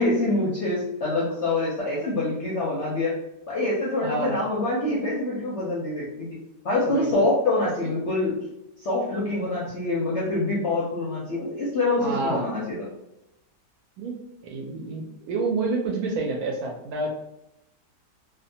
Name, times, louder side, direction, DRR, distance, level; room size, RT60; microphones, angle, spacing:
voice 1, 0.0-3.2 3.5-6.3 6.6-8.4 8.8-12.9, left 2 dB, 65° left, -6 dB, 0.7 m, -25 dB
voice 2, 4.0-4.3 6.8-7.1 12.0-12.4 14.0-14.1 14.4-17.1, right 3 dB, 70° right, -1 dB, 1.0 m, -28 dB
2.7 x 2.1 x 2.7 m, 0.87 s
omnidirectional pair, 1.8 m